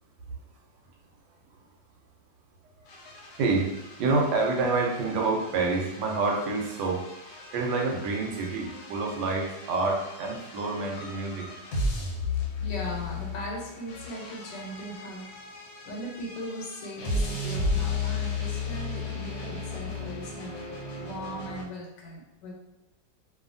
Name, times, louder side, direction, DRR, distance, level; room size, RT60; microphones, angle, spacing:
sound 1, 2.9-21.6, left 3 dB, 70° left, 1.2 m, -35 dB
voice 1, 3.4-3.7 4.0-7.1 7.5-11.5, right 3 dB, 75° right, 0 dB, 1.2 m, -27 dB
voice 2, 12.6-15.3 15.8-20.6 21.0-22.5, equal, 90° left, 0 dB, 1.4 m, -39 dB
2.6 x 2.5 x 2.5 m, 0.97 s
omnidirectional pair, 1.9 m